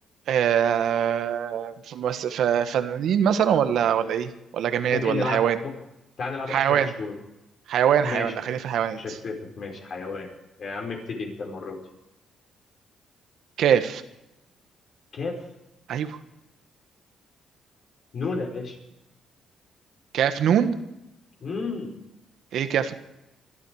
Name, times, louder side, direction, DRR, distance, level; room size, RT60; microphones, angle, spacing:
voice 1, 0.3-5.6 6.5-6.9 7.7-9.0 13.6-14.0 15.9-16.2 20.1-20.7 22.5-22.9, right 9 dB, 75° right, 10 dB, 1.4 m, -23 dB
voice 2, 4.9-5.7 6.2-7.1 8.0-8.4 8.9-10.3 10.6-11.8 15.1-15.4 18.1-18.8 21.4-22.0, left 4 dB, 55° left, 2 dB, 5.2 m, -32 dB
22.5 x 13.0 x 4.9 m, 0.92 s
cardioid pair, 90°, 0 cm